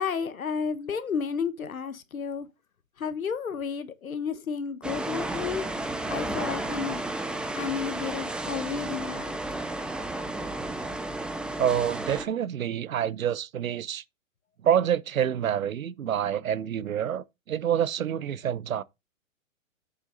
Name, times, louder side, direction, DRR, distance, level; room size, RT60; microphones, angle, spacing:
voice 1, 0.0-2.5 3.0-5.7 6.1-7.1 7.5-9.4, left 6 dB, 85° left, 1.4 m, -32 dB
sound 1, 4.8-12.2, right 2 dB, ahead, 0.6 m, -32 dB
voice 2, 11.6-14.0 14.6-18.8, right 9 dB, 80° right, 0.8 m, -27 dB
8.0 x 6.2 x 3.9 m
hypercardioid pair, 125°, 41 cm